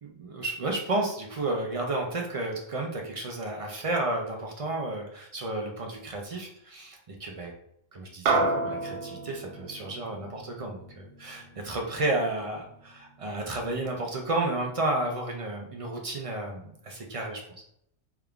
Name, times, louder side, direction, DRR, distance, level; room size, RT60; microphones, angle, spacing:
voice 1, 0.0-7.5 7.9-17.4, right 2 dB, 55° right, 1 dB, 0.4 m, -32 dB
sound 1, 8.3-12.9, right 3 dB, 70° right, 0.9 m, -31 dB
3.6 x 3.3 x 2.3 m, 0.73 s
omnidirectional pair, 1.3 m